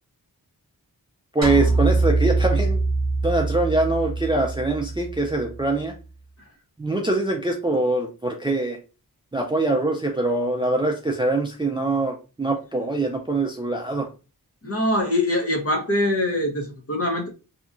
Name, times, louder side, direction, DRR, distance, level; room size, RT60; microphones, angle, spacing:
voice 1, 1.3-2.8 3.2-5.9 6.8-8.8 9.3-14.1, right 2 dB, 15° right, 1 dB, 0.4 m, -23 dB
sound 1, 1.4-5.8, right 3 dB, 45° right, 1.0 m, -24 dB
voice 2, 14.6-17.3, left 1 dB, 40° left, 1 dB, 0.8 m, -23 dB
2.8 x 2.2 x 2.5 m, 0.32 s
wide cardioid pair, 75°, 38 cm